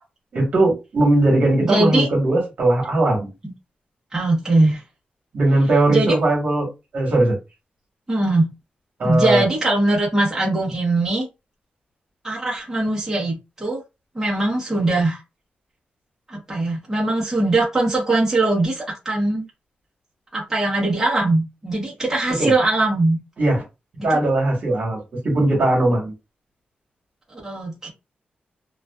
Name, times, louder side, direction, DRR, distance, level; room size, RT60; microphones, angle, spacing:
voice 1, 0.3-3.3 5.3-6.7 6.9-7.4 9.0-9.5 22.4-22.5 23.4-23.6 24.0-25.0 25.2-26.1, right 2 dB, 55° right, 1.2 m, -19 dB
voice 2, 1.6-2.1 3.4-3.5 4.1-4.8 5.9-6.1 8.1-8.5 9.0-11.3 12.2-13.8 14.1-15.2 16.3-19.5 20.3-23.2 24.0-24.1 27.3-27.9, right 2 dB, 15° right, 0.9 m, -21 dB
2.4 x 2.3 x 2.2 m
wide cardioid pair, 140°, 3 cm